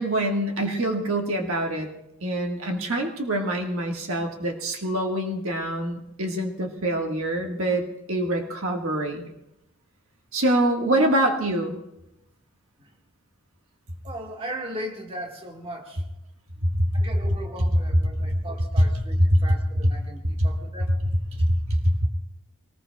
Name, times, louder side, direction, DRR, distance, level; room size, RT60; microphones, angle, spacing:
voice 1, 0.0-1.9 2.2-9.3 10.3-11.8 16.6-16.9 19.3-19.4 21.4-22.1, right 1 dB, 65° right, 2 dB, 1.6 m, -25 dB
voice 2, 14.0-16.0 16.9-21.0, right 1 dB, 25° right, 2 dB, 1.6 m, -38 dB
24.0 x 19.0 x 2.3 m, 0.88 s
head